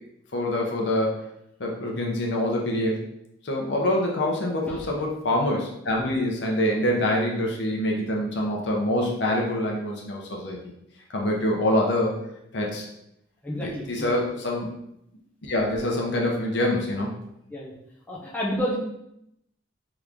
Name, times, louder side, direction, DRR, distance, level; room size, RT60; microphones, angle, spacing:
voice 1, 0.3-1.1 1.6-3.0 3.4-10.6 11.1-12.1 12.5-12.9 13.6-14.7 15.4-17.1, left 1 dB, 70° left, 0 dB, 0.7 m, -25 dB
voice 2, 13.4-14.1 17.5-17.7 18.1-18.8, equal, 10° left, -6 dB, 0.5 m, -30 dB
2.9 x 2.5 x 3.5 m, 0.79 s
head